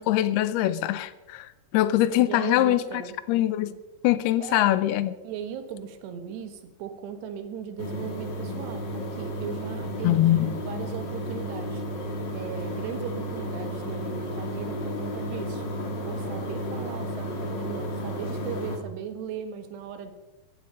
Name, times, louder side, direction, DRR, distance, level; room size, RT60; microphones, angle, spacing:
voice 1, 0.0-2.8 3.3-3.8 4.0-5.2 10.0-10.5, left 14 dB, 80° left, 2.5 m, -23 dB
voice 2, 2.2-3.2 4.4-4.7 5.2-11.8 12.3-15.6 16.1-20.1, right 7 dB, 85° right, 3.5 m, -38 dB
sound 1, 7.8-18.8, equal, 35° left, 1.9 m, -33 dB
16.0 x 14.5 x 5.3 m
omnidirectional pair, 4.7 m